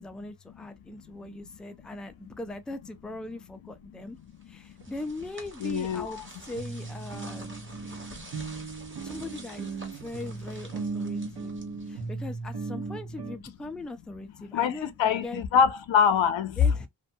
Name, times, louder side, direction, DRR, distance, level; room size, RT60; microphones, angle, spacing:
voice 1, 0.0-4.2 4.5-7.6 9.0-11.5 11.9-15.4 16.6-16.9, left 2 dB, ahead, 0.3 m, -40 dB
sound 1, 4.4-12.2, right 2 dB, 25° right, 1.1 m, -48 dB
sound 2, 4.8-4.9 5.4-5.5 5.9-6.0 6.6-13.4, right 4 dB, 60° right, 0.9 m, -37 dB
voice 2, 5.6-6.3 14.5-16.6, left 7 dB, 85° left, 0.6 m, -24 dB
2.5 x 2.2 x 2.6 m
wide cardioid pair, 70°, 45 cm